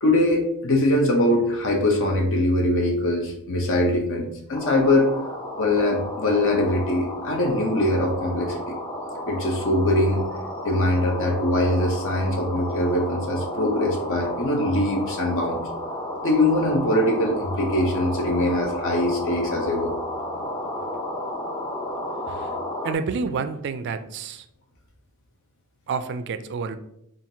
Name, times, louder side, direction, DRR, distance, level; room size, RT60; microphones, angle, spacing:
voice 1, 0.0-5.1 5.6-8.8 9.3-10.2 10.6-15.6 16.2-19.9, left 1 dB, 60° left, 1 dB, 0.7 m, -22 dB
sound 1, 4.5-22.9, left 1 dB, 15° left, 0.5 m, -32 dB
voice 2, 22.8-24.5 25.9-26.8, right 5 dB, 50° right, 10 dB, 0.3 m, -29 dB
5.6 x 2.5 x 2.7 m, 0.80 s
head